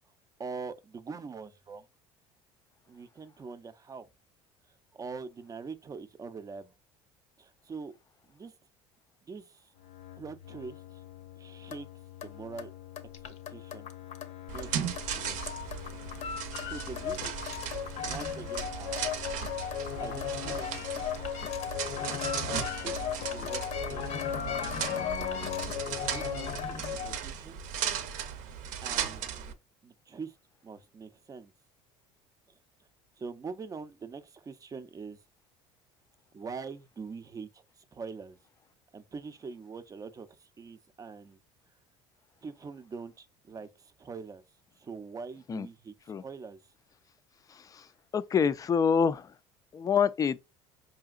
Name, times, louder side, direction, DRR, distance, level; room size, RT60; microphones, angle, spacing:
voice 1, 0.4-1.9 2.9-4.1 4.7-6.7 7.4-7.9 8.3-8.6 9.3-9.7 10.2-11.0 11.4-11.9 12.2-12.7 13.2-13.9 14.5-15.4 16.1-16.2 16.7-17.4 18.0-19.1 20.0-21.2 22.7-24.3 25.8-27.6 28.8-29.3 29.8-30.4 30.6-31.5 32.5-32.6 33.2-35.2 36.3-38.4 38.9-41.4 42.4-44.4 44.8-45.9 46.2-46.7, right 5 dB, 25° right, 0.5 m, -44 dB
sound 1, 9.8-27.2, left 8 dB, 55° left, 0.7 m, -37 dB
sound 2, 14.5-29.5, right 8 dB, 70° right, 0.6 m, -37 dB
voice 2, 47.5-47.9 48.1-49.3 49.7-50.4, left 6 dB, 25° left, 0.3 m, -27 dB
4.8 x 2.8 x 2.4 m
supercardioid pair, 90°, 13 cm